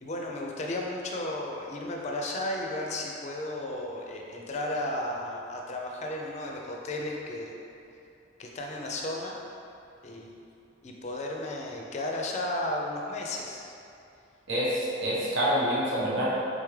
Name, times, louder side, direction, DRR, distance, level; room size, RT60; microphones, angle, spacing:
voice 1, 0.0-7.5 8.4-9.3 10.0-10.4 10.8-13.7, left 1 dB, 35° left, -1 dB, 0.4 m, -34 dB
voice 2, 14.5-16.3, equal, 80° right, -7 dB, 1.0 m, -27 dB
3.9 x 3.5 x 3.2 m, 2.7 s
head